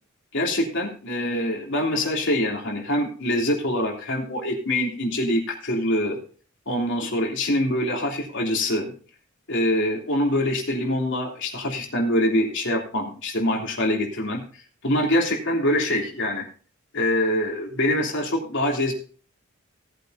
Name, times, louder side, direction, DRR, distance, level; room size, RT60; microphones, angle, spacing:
voice 1, 0.3-6.2 6.7-8.9 9.5-16.5 16.9-18.9, left 1 dB, 55° left, 0 dB, 3.2 m, -24 dB
18.0 x 8.2 x 2.8 m, 0.39 s
head